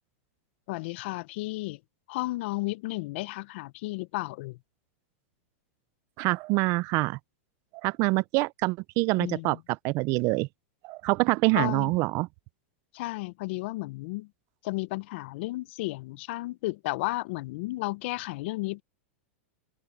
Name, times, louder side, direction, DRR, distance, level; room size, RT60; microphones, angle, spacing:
voice 1, 0.7-1.8 2.1-4.6 9.2-9.6 11.6-11.9 12.9-14.3 14.6-18.8, left 21 dB, 60° left, 0.6 m, -33 dB
voice 2, 6.2-7.2 7.8-10.5 10.8-12.3, right 24 dB, 45° right, 0.5 m, -26 dB
supercardioid pair, 135°, 7 cm